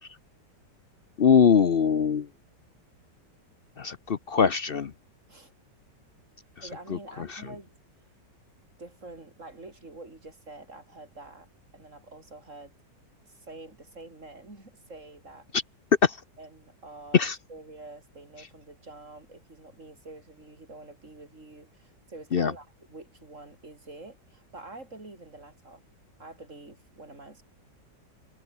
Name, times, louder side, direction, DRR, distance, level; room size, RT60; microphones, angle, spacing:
voice 1, 1.2-2.3 3.8-4.9 6.6-7.0 7.3-7.4 16.0-16.2 17.1-17.4 22.3-22.5, left 6 dB, 50° left, 0.7 m, -22 dB
voice 2, 6.6-7.8 8.8-11.5 11.7-12.7 13.3-15.5 16.4-17.2 17.5-25.8 26.2-27.4, right 2 dB, 45° right, 5.1 m, -47 dB
omnidirectional pair, 1.9 m